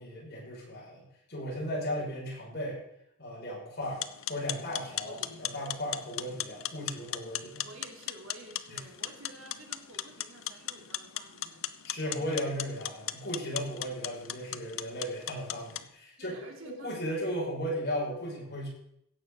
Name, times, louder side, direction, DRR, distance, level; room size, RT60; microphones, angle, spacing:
voice 1, 0.0-2.8 3.2-4.0 4.3-7.7 8.7-8.8 11.8-16.4 16.6-18.7, equal, 50° left, -4 dB, 6.0 m, -36 dB
sound 1, 3.8-15.9, left 12 dB, 75° left, 0.7 m, -38 dB
voice 2, 5.0-5.5 7.2-11.7 12.1-12.4 16.2-17.0, right 1 dB, 70° right, 1 dB, 2.8 m, -50 dB
16.5 x 6.7 x 7.0 m, 0.76 s
head